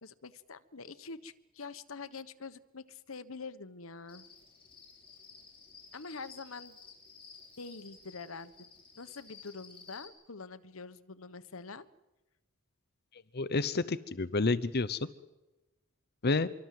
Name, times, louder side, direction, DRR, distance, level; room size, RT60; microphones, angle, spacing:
voice 1, 0.0-4.3 5.9-6.8 7.6-8.7 9.0-11.9, left 4 dB, 75° left, 12 dB, 1.3 m, -45 dB
Cricket, 4.1-10.1, left 5 dB, 25° left, 6.7 m, -54 dB
voice 2, 13.1-15.1 16.2-16.5, left 3 dB, 50° left, 16 dB, 0.8 m, -30 dB
26.5 x 23.5 x 7.8 m, 1.0 s
head